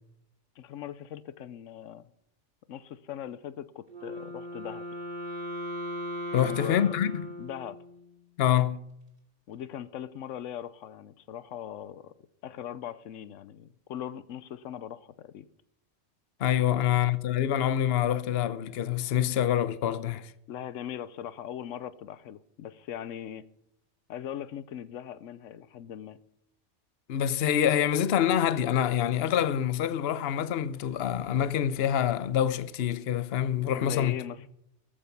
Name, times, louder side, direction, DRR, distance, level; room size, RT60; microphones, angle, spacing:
voice 1, 0.6-2.1 2.7-4.8 6.4-7.0 7.4-7.8 9.5-12.1 12.4-15.5 16.7-17.0 20.5-23.4 24.1-26.2 33.7-34.5, left 10 dB, 90° left, 1.1 m, -40 dB
Wind instrument woodwind instrument, 3.9-8.1, equal, 40° right, 2.8 m, -38 dB
voice 2, 6.3-7.3 8.4-8.8 16.4-20.3 27.1-34.2, left 10 dB, 60° left, 0.9 m, -26 dB
14.0 x 8.7 x 5.8 m
omnidirectional pair, 1.2 m